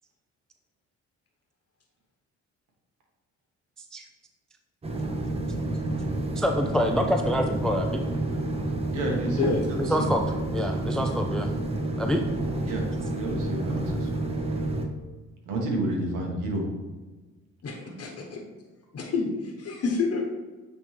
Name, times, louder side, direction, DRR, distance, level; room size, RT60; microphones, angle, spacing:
sound 1, 4.8-14.9, right 2 dB, 20° right, 0.8 m, -29 dB
voice 1, 6.4-8.0 9.8-10.2 10.5-11.5 12.0-12.2, equal, ahead, 4 dB, 0.3 m, -26 dB
voice 2, 8.9-10.1 12.7-12.8 13.1-14.1 15.4-16.6, right 1 dB, 90° right, 0 dB, 1.4 m, -30 dB
voice 3, 17.6-18.4 18.9-20.2, left 4 dB, 55° left, 0 dB, 1.1 m, -28 dB
8.6 x 3.5 x 3.3 m, 1.3 s
cardioid pair, 90°, 30 cm